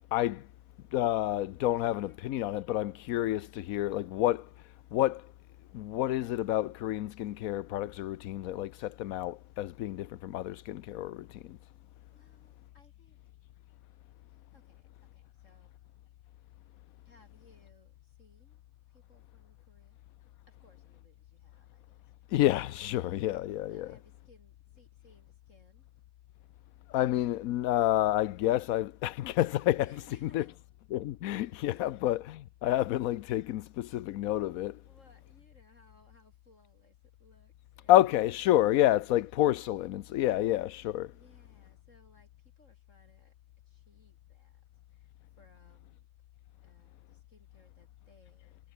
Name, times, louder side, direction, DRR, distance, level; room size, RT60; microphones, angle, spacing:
voice 1, 0.1-0.5 0.9-4.5 4.9-5.3 5.7-11.6 22.3-24.0 26.9-30.5 30.9-34.8 37.9-41.1, left 14 dB, 75° left, 1.1 m, -29 dB
voice 2, 1.7-2.2 12.1-13.2 14.5-15.7 17.0-18.6 18.9-20.0 20.5-22.0 23.7-25.9 29.8-30.6 31.3-32.1 32.7-32.8 34.7-37.9 38.4-39.1 41.1-43.3 43.7-44.6 44.9-45.1 45.4-46.1 46.6-48.6, left 1 dB, 60° left, 7.6 m, -64 dB
omnidirectional pair, 1.5 m